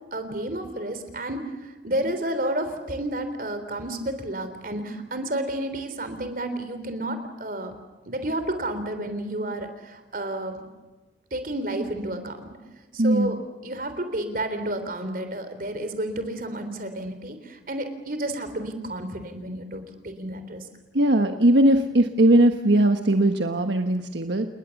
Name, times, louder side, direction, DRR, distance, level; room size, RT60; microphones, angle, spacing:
voice 1, 0.1-7.7 8.1-10.7 11.3-12.5 12.9-13.4 13.6-20.7, right 1 dB, 50° right, 9 dB, 3.5 m, -31 dB
voice 2, 13.0-13.4 20.9-24.5, right 1 dB, 75° right, 6 dB, 1.3 m, -19 dB
29.5 x 20.5 x 7.2 m, 1.1 s
head